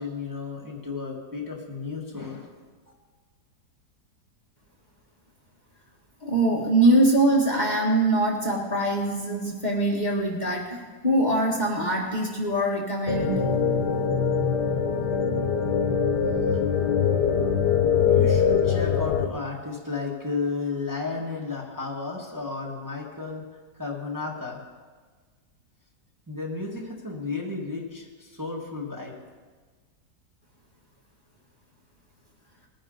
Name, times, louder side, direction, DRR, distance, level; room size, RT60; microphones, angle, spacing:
voice 1, 0.0-2.5 2.9-3.0 18.0-23.4 23.7-24.6 26.3-29.2, left 4 dB, 10° right, -3 dB, 1.5 m, -33 dB
voice 2, 6.2-13.4, right 1 dB, 25° left, -3 dB, 1.6 m, -23 dB
sound 1, 13.1-19.3, left 7 dB, 75° left, 1.5 m, -23 dB
20.0 x 10.0 x 3.9 m, 1.4 s
omnidirectional pair, 1.8 m